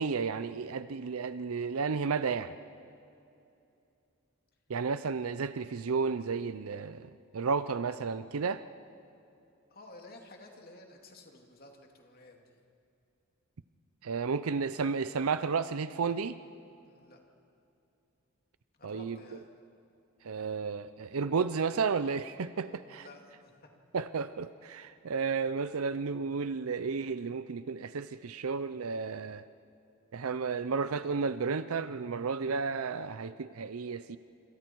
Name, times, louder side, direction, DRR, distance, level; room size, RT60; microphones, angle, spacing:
voice 1, 0.0-2.6 4.7-8.6 14.0-16.3 18.8-19.2 20.2-23.1 23.9-29.4 30.1-34.2, right 5 dB, 80° right, 13 dB, 0.6 m, -32 dB
voice 2, 9.7-12.6 16.8-17.2 18.8-19.5 22.6-23.7, left 2 dB, 45° left, 2 dB, 2.7 m, -53 dB
27.5 x 27.0 x 4.6 m, 2.7 s
head